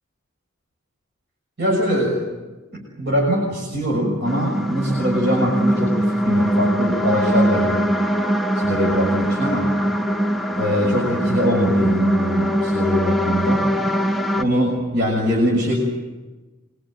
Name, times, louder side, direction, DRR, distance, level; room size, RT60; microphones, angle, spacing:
voice 1, 1.6-2.3 2.7-7.8 8.5-9.8 10.6-13.7 14.3-15.8, equal, 55° right, -2 dB, 6.6 m, -22 dB
sound 1, 4.2-14.4, equal, ahead, 0.9 m, -21 dB
27.0 x 23.5 x 8.9 m, 1.2 s
head